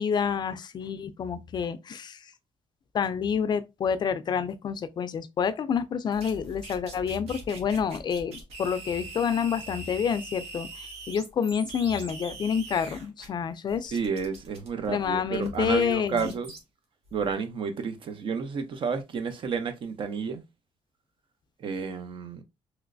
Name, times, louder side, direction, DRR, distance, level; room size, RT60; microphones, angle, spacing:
voice 1, 0.0-2.2 2.9-13.9 14.9-16.4, left 7 dB, 45° left, 0.3 m, -28 dB
sound 1, 6.1-13.3 13.7-16.6 17.1-17.3, right 2 dB, 80° right, 1.2 m, -43 dB
voice 2, 13.9-16.5 17.1-20.4 21.6-22.4, right 5 dB, 55° right, 0.6 m, -31 dB
3.0 x 3.0 x 2.5 m
cardioid pair, 120°, 10 cm